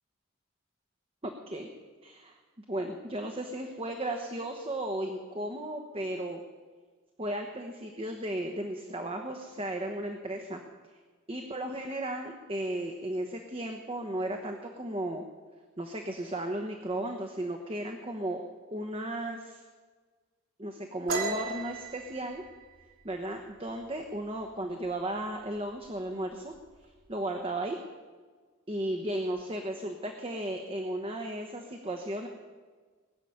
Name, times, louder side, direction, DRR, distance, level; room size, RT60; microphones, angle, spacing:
voice 1, 1.2-1.7 2.0-2.4 2.7-6.4 7.2-10.6 11.3-15.3 15.8-18.4 18.7-19.6 20.6-22.4 23.0-26.5 27.1-27.8 28.7-32.3, right 1 dB, 30° right, 4 dB, 1.1 m, -35 dB
sound 1, 21.1-24.5 24.8-25.2 25.5-26.1 26.3-27.1, right 3 dB, 85° right, 3.0 m, -37 dB
20.5 x 7.1 x 9.4 m, 1.5 s
head